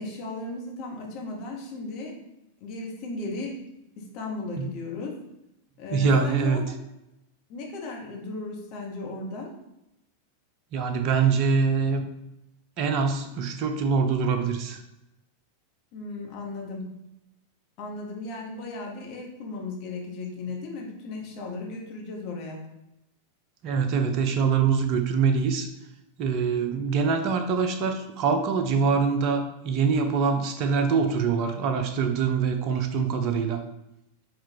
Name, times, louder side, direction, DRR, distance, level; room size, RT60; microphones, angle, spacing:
voice 1, 0.0-2.1 2.6-3.6 4.0-5.2 5.8-6.6 7.5-9.5 15.9-16.9 17.8-22.6, left 3 dB, 40° left, -1 dB, 1.1 m, -36 dB
voice 2, 5.9-6.6 10.7-12.1 12.8-14.8 23.6-25.7 26.2-33.6, right 5 dB, 40° right, 6 dB, 0.5 m, -24 dB
4.3 x 2.5 x 4.5 m, 0.88 s
figure-of-eight pair, 90°, 0 cm